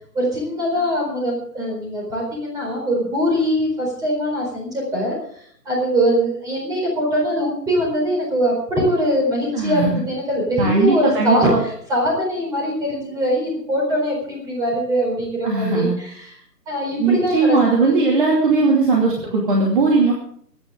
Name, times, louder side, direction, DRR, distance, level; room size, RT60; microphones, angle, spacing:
voice 1, 0.1-5.2 5.6-16.3 16.7-17.9 18.6-18.9, equal, 5° right, -3 dB, 4.3 m, -22 dB
voice 2, 9.5-10.0 10.6-11.6 15.4-16.0 17.0-20.1, right 4 dB, 30° right, -2 dB, 2.6 m, -18 dB
25.0 x 10.5 x 3.7 m, 0.63 s
figure-of-eight pair, 145°, 48 cm